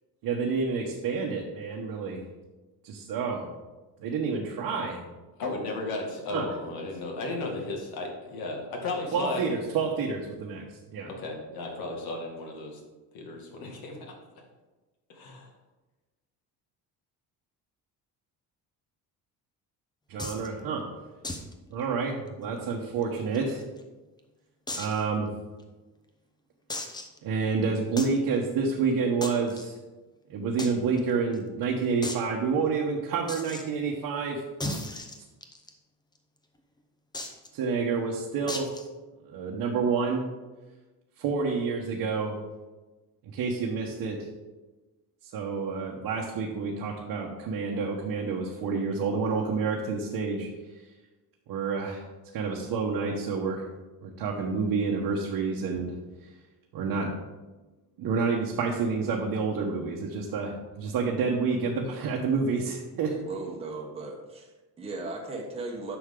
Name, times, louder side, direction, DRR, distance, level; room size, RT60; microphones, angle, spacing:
voice 1, 0.2-2.2 2.8-3.5 4.0-5.0 6.3-6.6 9.1-10.6 10.9-11.1 20.1-20.8 21.7-23.6 24.7-25.3 27.2-29.7 30.3-34.4 37.5-38.7 39.2-40.3 41.2-42.4 43.3-44.3 45.2-50.5 51.5-52.0 52.3-53.7 54.0-55.9 56.7-57.1 58.0-63.1, right 5 dB, 70° right, -1 dB, 1.2 m, -29 dB
voice 2, 5.4-9.4 11.1-12.8 13.1-14.0 15.1-15.5, left 2 dB, 65° left, 1 dB, 2.1 m, -34 dB
sound 1, 20.2-20.5 21.2-21.5 21.8-21.9 22.3-22.4 23.0-23.8 24.7-25.0 25.6-25.7 26.7-27.2 28.0-28.2 29.2-29.6 30.6-30.7 31.0-31.1 31.3-31.4 32.0-32.3 33.3-33.6 34.6-35.7 37.1-37.5 38.5-38.9, left 1 dB, 10° left, 0.6 m, -35 dB
voice 3, 63.1-66.0, right 3 dB, 15° right, -1 dB, 1.0 m, -37 dB
10.0 x 6.3 x 3.8 m, 1.2 s
cardioid pair, 165°, 39 cm